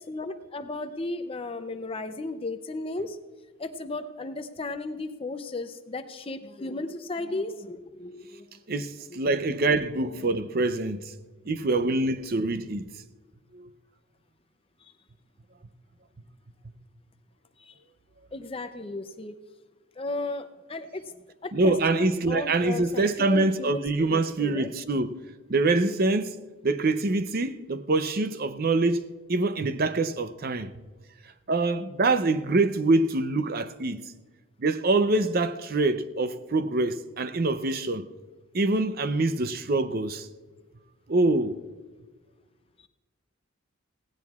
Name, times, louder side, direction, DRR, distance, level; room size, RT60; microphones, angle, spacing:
voice 1, 0.0-3.2 3.6-8.6 9.1-9.2 14.8-14.9 17.6-17.8 18.3-19.3 20.0-21.0 21.4-24.7, left 2 dB, 25° left, 0.5 m, -35 dB
voice 2, 8.7-11.1 11.5-12.9 13.5-13.7 21.5-25.2 25.5-26.4 26.6-30.7 31.5-34.1 34.6-38.1 38.5-40.3 41.1-41.6, right 2 dB, 45° right, 0.5 m, -25 dB
17.5 x 16.5 x 2.4 m
head